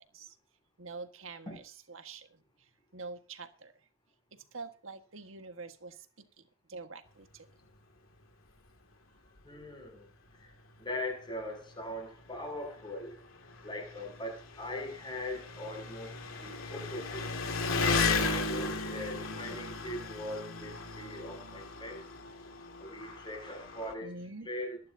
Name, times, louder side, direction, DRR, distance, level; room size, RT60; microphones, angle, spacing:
voice 1, 0.8-1.6 1.9-2.3 2.9-3.7 4.5-6.1 6.7-7.5 24.0-24.5, right 3 dB, 70° right, 7 dB, 1.6 m, -45 dB
Engine, 9.4-9.5 9.8-9.9 10.9-11.0 11.2-23.9, left 3 dB, 80° left, 2.4 m, -36 dB
voice 2, 9.4-10.1 10.4-10.5 10.8-13.2 13.6-16.1 16.4-17.2 17.7-22.0 22.8-24.1 24.4-24.8, left 1 dB, 25° left, 1 dB, 7.0 m, -40 dB
22.0 x 10.5 x 2.8 m, 0.38 s
head